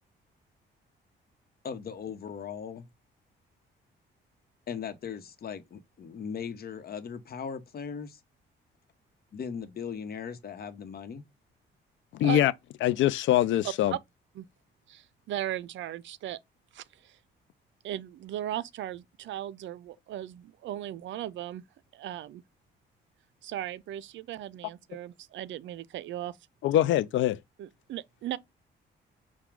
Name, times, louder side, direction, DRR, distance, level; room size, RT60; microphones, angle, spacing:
voice 1, 1.6-2.8 4.7-8.2 9.3-11.2, left 7 dB, 50° left, 1.0 m, -38 dB
voice 2, 12.1-12.5 12.8-13.9 26.6-27.4, left 13 dB, 75° left, 0.5 m, -23 dB
voice 3, 14.9-16.4 16.7-17.2 17.8-21.6 21.9-22.4 23.4-26.4 27.6-28.4, right 12 dB, 70° right, 0.5 m, -37 dB
5.8 x 2.3 x 3.6 m
cardioid pair, 90°, 20 cm